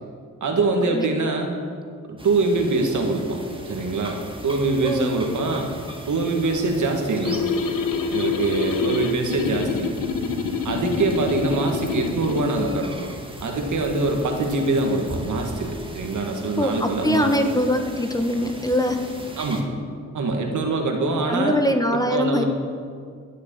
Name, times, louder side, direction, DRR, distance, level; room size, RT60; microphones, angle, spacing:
voice 1, 0.4-1.6 2.1-3.4 3.6-5.7 6.1-7.5 8.1-9.9 10.6-13.1 13.4-17.3 19.4-19.7 20.1-21.6 21.9-22.4, right 3 dB, 70° right, 3 dB, 2.1 m, -24 dB
sound 1, 2.2-19.6, right 1 dB, 15° right, 1.8 m, -39 dB
voice 2, 4.8-5.2 16.6-19.1 21.3-22.4, left 1 dB, 10° left, 5 dB, 1.2 m, -22 dB
sound 2, 7.3-12.5, left 5 dB, 85° left, 1.2 m, -26 dB
19.5 x 6.7 x 7.2 m, 2.1 s
cardioid pair, 85°, 32 cm